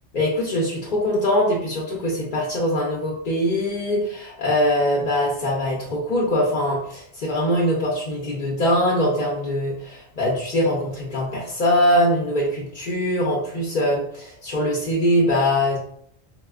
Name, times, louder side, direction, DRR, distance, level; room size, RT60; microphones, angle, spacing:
voice 1, 0.1-15.8, left 1 dB, 55° left, -3 dB, 0.7 m, -22 dB
4.0 x 2.1 x 2.3 m, 0.68 s
omnidirectional pair, 1.1 m